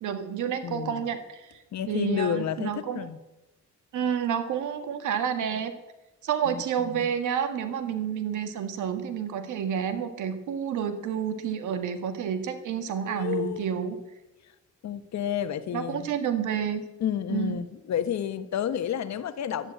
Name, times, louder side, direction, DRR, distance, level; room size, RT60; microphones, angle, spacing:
voice 1, 0.0-1.6 1.9-3.0 3.9-5.7 6.2-14.0 15.7-16.8 17.3-17.6, right 8 dB, 80° right, 9 dB, 1.7 m, -29 dB
voice 2, 0.6-1.0 1.7-3.2 6.4-7.1 13.0-13.8 14.8-16.1 17.0-19.7, left 9 dB, 65° left, 11 dB, 1.1 m, -31 dB
11.5 x 9.8 x 8.6 m, 1.0 s
cardioid pair, 90°, 30 cm